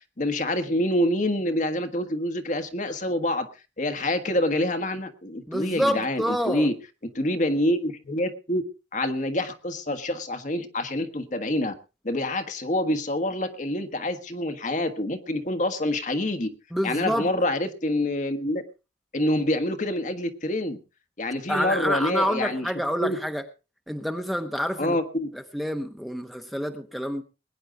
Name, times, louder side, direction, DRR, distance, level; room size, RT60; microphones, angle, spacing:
voice 1, 0.2-3.5 3.8-6.7 7.1-8.6 8.9-11.7 12.0-16.5 16.8-18.6 19.1-20.8 21.2-22.7 23.0-23.2 24.8-25.3, left 1 dB, 40° left, 1.4 m, -26 dB
voice 2, 5.5-6.7 16.7-17.3 21.5-23.4 23.9-25.0 25.3-27.2, equal, ahead, 1.0 m, -27 dB
21.5 x 9.9 x 3.8 m
head